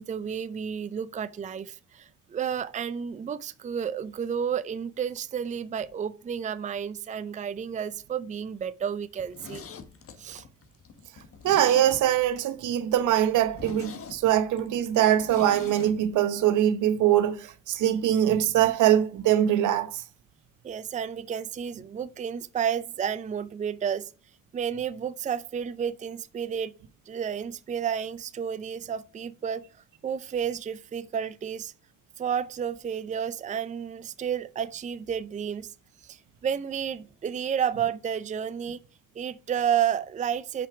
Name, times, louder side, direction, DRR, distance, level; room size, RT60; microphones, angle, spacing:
voice 1, 0.0-9.6 10.2-10.4 20.6-24.1 24.5-26.7 27.1-29.7 30.0-31.7 32.2-35.7 36.0-38.8 39.1-40.7, right 8 dB, 25° right, 0.4 m, -31 dB
Zipper (clothing), 9.1-12.4 12.7-12.8 13.2-13.3 13.5-15.9 16.2-16.3, left 5 dB, 50° left, 1.2 m, -43 dB
voice 2, 11.4-20.0, right 11 dB, 80° right, 0.9 m, -23 dB
5.7 x 5.2 x 5.9 m
cardioid pair, 90°, 30 cm